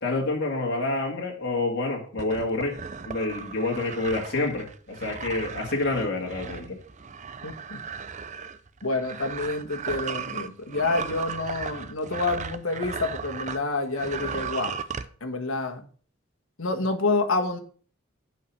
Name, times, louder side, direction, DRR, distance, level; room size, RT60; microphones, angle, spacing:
voice 1, 0.0-2.8 3.0-6.8, left 2 dB, 55° left, -1 dB, 2.2 m, -28 dB
sound 1, 2.2-13.6 13.9-15.1, right 6 dB, 35° right, 0.6 m, -36 dB
voice 2, 7.4-7.8 8.8-14.8 15.2-15.9 16.6-17.6, left 3 dB, 80° left, 4 dB, 1.5 m, -28 dB
8.2 x 5.9 x 6.0 m, 0.43 s
head